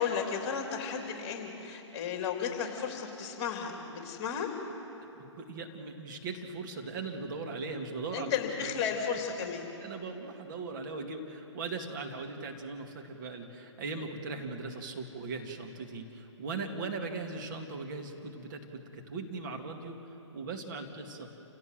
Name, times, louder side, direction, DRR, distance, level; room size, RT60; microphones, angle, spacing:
voice 1, 0.0-4.5 8.1-9.7, left 7 dB, 25° left, 2 dB, 3.4 m, -34 dB
voice 2, 5.2-8.3 8.6-8.8 9.8-20.0 20.3-21.3, right 3 dB, 40° right, 3 dB, 2.3 m, -39 dB
28.5 x 17.0 x 7.8 m, 2.9 s
figure-of-eight pair, 130°, 16 cm